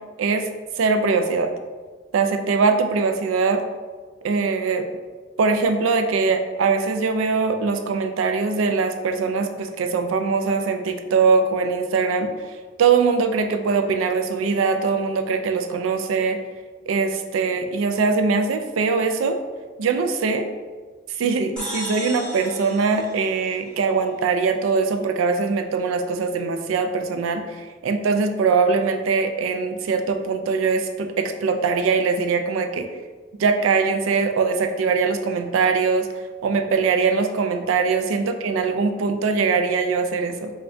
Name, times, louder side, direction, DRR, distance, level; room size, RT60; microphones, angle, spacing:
voice 1, 0.8-1.5 2.1-3.6 4.2-4.9 5.4-16.4 16.9-19.4 19.8-20.5 21.2-32.9 33.4-36.1 36.4-40.5, right 4 dB, 80° right, 7 dB, 0.4 m, -22 dB
sound 1, 21.6-24.1, left 1 dB, 5° left, 1.0 m, -36 dB
5.4 x 2.3 x 2.5 m, 1.4 s
head